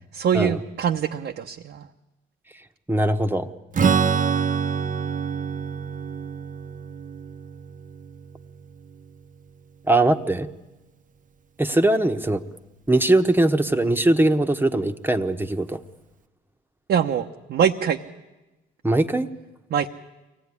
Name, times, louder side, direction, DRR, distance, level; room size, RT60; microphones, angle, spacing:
voice 1, 0.1-1.9 16.9-18.0 19.7-19.9, right 8 dB, 65° right, 2 dB, 1.0 m, -23 dB
voice 2, 2.9-3.5 9.9-10.5 11.6-12.4 12.9-15.8 18.8-19.3, right 2 dB, 10° right, 7 dB, 1.2 m, -20 dB
Strum, 3.7-9.4, right 6 dB, 40° right, 0.9 m, -26 dB
24.0 x 17.5 x 9.8 m, 1.1 s
cardioid pair, 90°, 20 cm